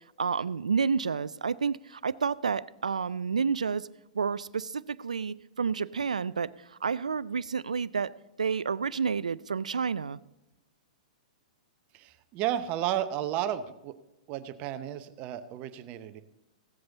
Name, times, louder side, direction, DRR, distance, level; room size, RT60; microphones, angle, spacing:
voice 1, 0.2-3.9 4.1-8.1 8.4-10.2, right 5 dB, 85° right, 19 dB, 0.3 m, -30 dB
voice 2, 11.9-13.9 14.3-16.2, right 11 dB, 40° right, 11 dB, 0.8 m, -33 dB
16.5 x 7.7 x 4.0 m, 0.93 s
hypercardioid pair, 110°, 4 cm